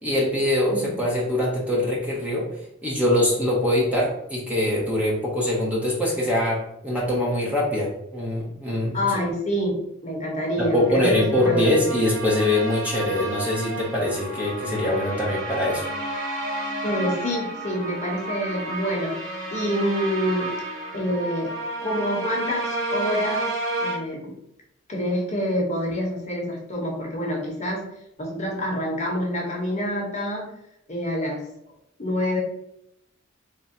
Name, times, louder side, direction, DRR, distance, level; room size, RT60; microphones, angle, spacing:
voice 1, 0.0-2.5 2.8-9.0 10.6-15.8, left 1 dB, 5° right, -4 dB, 0.7 m, -23 dB
voice 2, 0.7-1.0 8.9-11.7 16.8-20.6 20.9-21.5 21.8-24.3 24.9-27.9 28.2-30.5 30.9-31.4 32.0-32.4, equal, 35° left, -1 dB, 1.0 m, -27 dB
sound 1, 10.6-24.0, right 1 dB, 80° right, 1.3 m, -31 dB
3.6 x 2.1 x 4.2 m, 0.78 s
head